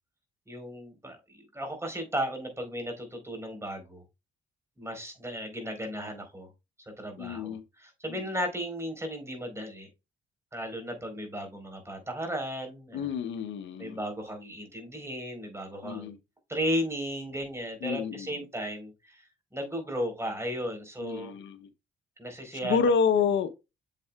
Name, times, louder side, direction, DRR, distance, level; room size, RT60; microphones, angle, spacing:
voice 1, 0.5-4.0 4.8-6.5 7.0-9.9 10.5-13.1 13.8-16.1 16.5-21.3 22.2-22.8, equal, 15° right, 4.1 m, -35 dB
voice 2, 7.2-7.6 8.1-8.3 12.9-14.0 15.8-16.2 17.8-18.3 21.0-21.6 22.6-23.6, left 6 dB, 70° left, 0.9 m, -28 dB
7.7 x 7.4 x 2.3 m
cardioid pair, 90°, 20 cm